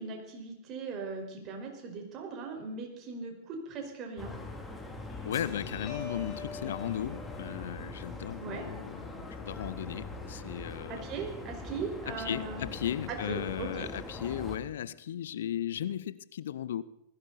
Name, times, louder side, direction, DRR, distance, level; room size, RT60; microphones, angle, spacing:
voice 1, 0.0-4.3 8.4-8.6 10.9-12.7 13.1-13.9, right 4 dB, 35° right, 2 dB, 5.0 m, -39 dB
sound 1, 4.2-14.6, left 2 dB, 10° left, 2.9 m, -42 dB
Guitar, 5.1-12.1, left 4 dB, 35° left, 5.2 m, -48 dB
voice 2, 5.2-11.1 12.1-16.8, left 10 dB, 65° left, 18 dB, 0.7 m, -36 dB
20.0 x 16.5 x 4.2 m, 0.79 s
figure-of-eight pair, 95°, 0 cm